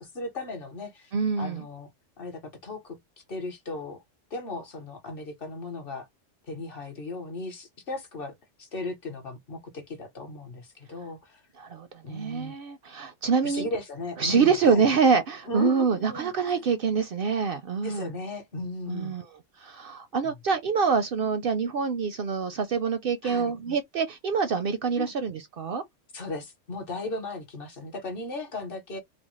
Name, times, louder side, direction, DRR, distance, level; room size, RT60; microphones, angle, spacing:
voice 1, 0.0-1.9 2.2-3.0 3.3-4.0 4.3-6.1 6.5-11.4 12.0-12.5 13.4-14.9 15.5-16.7 17.8-19.2 23.2-23.5 25.0-25.1 26.1-29.0, left 2 dB, 50° left, 1.0 m, -36 dB
voice 2, 1.1-1.6 11.6-13.7 14.2-18.1 18.9-19.2 19.6-25.8, right 5 dB, 65° right, 0.6 m, -26 dB
3.3 x 2.1 x 3.0 m
omnidirectional pair, 1.3 m